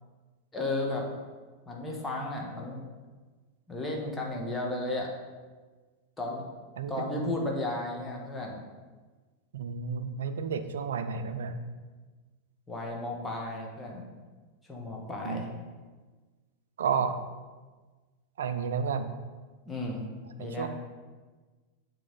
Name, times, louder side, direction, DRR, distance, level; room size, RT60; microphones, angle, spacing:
voice 1, 0.5-1.1 1.6-2.8 3.7-5.1 6.2-6.4 6.9-8.6 12.7-14.0 14.6-15.5 19.6-20.1 20.4-20.7, left 2 dB, 10° left, -1 dB, 1.4 m, -34 dB
voice 2, 6.8-7.4 9.5-11.6 15.2-15.4 16.8-17.2 18.4-19.1 20.4-20.7, right 6 dB, 65° right, 10 dB, 0.5 m, -31 dB
9.0 x 3.4 x 4.1 m, 1.3 s
figure-of-eight pair, 90°, 0 cm